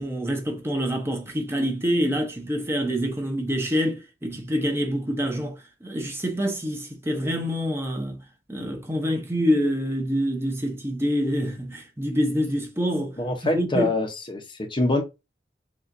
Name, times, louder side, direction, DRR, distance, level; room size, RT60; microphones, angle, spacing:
voice 1, 0.0-5.6 5.8-8.2 8.5-13.2 13.5-13.9, equal, 15° right, 0.8 m, -26 dB
voice 2, 13.2-15.0, left 2 dB, 25° left, 0.8 m, -25 dB
6.6 x 2.5 x 2.6 m
head